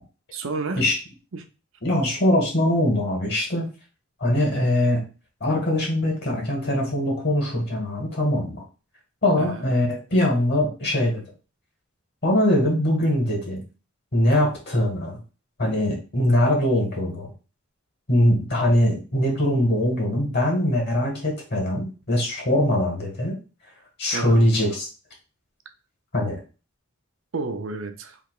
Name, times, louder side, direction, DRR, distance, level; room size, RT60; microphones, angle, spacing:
voice 1, 0.3-0.8 1.3-1.5 9.4-9.7 24.1-24.5 27.3-28.2, right 3 dB, 65° right, 0.6 m, -31 dB
voice 2, 1.8-3.7 4.2-5.0 5.4-8.6 9.2-11.2 12.2-13.6 14.1-15.2 15.6-17.3 18.1-23.4 24.0-24.9 26.1-26.4, left 1 dB, 55° left, 1.9 m, -22 dB
3.4 x 2.9 x 4.8 m
head